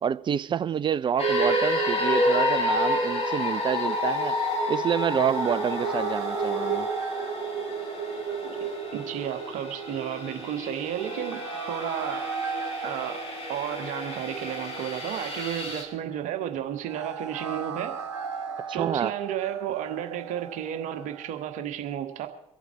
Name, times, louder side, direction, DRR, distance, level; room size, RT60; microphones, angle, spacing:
voice 1, 0.0-4.4 4.7-6.9 18.8-19.1, right 8 dB, 35° right, 0.6 m, -28 dB
sound 1, 1.2-15.8, equal, 40° left, 4.3 m, -29 dB
sound 2, 1.7-21.6, right 5 dB, 85° right, 0.7 m, -39 dB
voice 2, 8.6-12.3 12.8-18.0 18.7-22.3, right 10 dB, 60° right, 1.6 m, -32 dB
24.0 x 8.1 x 4.7 m
figure-of-eight pair, 55°, 15 cm